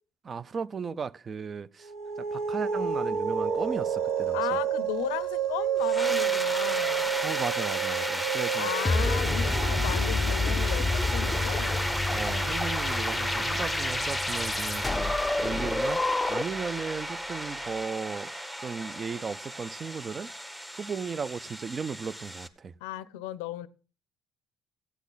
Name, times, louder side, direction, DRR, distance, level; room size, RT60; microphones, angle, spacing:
voice 1, 0.3-1.9 2.2-4.6 7.2-8.7 12.1-18.3 18.6-20.3 20.7-22.7, right 5 dB, 40° right, 0.5 m, -36 dB
sound 1, 1.8-14.7, right 8 dB, 75° right, 1.1 m, -31 dB
voice 2, 4.3-7.1 8.6-11.9 22.8-23.7, left 14 dB, 85° left, 0.5 m, -35 dB
sound 2, 5.8-22.5, equal, 10° right, 1.2 m, -34 dB
sound 3, 8.8-16.7, left 3 dB, 20° left, 0.5 m, -29 dB
15.5 x 8.1 x 3.9 m
hypercardioid pair, 65°, 0 cm